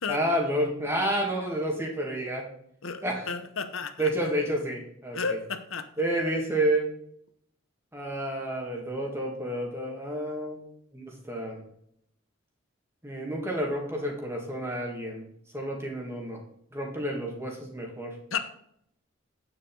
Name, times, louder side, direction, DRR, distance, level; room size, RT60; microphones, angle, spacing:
voice 1, 0.1-2.5 3.0-3.3 4.0-5.4 6.0-6.9 7.9-10.7 10.9-11.6 13.0-15.3 15.5-16.4 16.7-18.2, right 1 dB, 10° right, 0 dB, 1.9 m, -30 dB
voice 2, 2.8-4.1 5.1-5.9 18.3-18.4, left 5 dB, 75° left, 8 dB, 0.9 m, -32 dB
9.1 x 7.3 x 3.9 m, 0.70 s
head